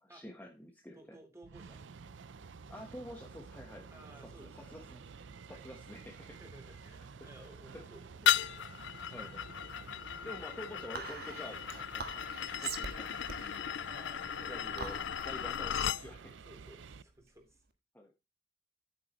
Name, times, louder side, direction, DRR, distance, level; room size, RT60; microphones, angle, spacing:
voice 1, 0.0-1.2 2.7-3.9 4.2-5.0 5.5-6.4 7.2-7.8 9.1-9.4 9.7-13.9 14.5-16.3 17.9-18.1, left 1 dB, 10° left, 1 dB, 1.2 m, -49 dB
voice 2, 0.9-1.8 3.9-4.7 5.5-5.6 6.3-8.7 9.5-10.3 13.9-14.8 15.1-15.3 16.2-17.6, right 1 dB, 15° right, 3 dB, 3.6 m, -57 dB
sound 1, 1.4-17.0, right 5 dB, 85° right, 0.5 m, -51 dB
sound 2, 8.3-16.0, left 9 dB, 75° left, 0.4 m, -36 dB
Whispering, 10.9-17.6, right 5 dB, 60° right, 1.5 m, -45 dB
11.0 x 9.2 x 3.1 m, 0.25 s
head